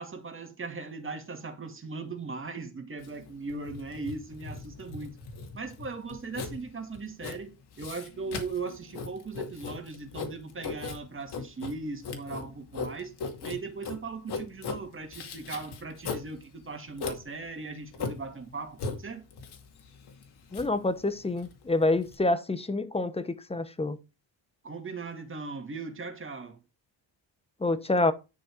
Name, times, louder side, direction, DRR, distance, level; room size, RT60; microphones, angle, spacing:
voice 1, 0.0-5.2 5.5-13.1 13.4-19.2 24.6-26.6, right 4 dB, 25° right, 2.3 m, -38 dB
Writing, 3.0-22.2, left 4 dB, 60° left, 2.5 m, -39 dB
voice 2, 20.5-24.0 27.6-28.1, left 2 dB, 15° left, 0.9 m, -27 dB
11.0 x 6.3 x 4.7 m
cardioid pair, 145°, 45 cm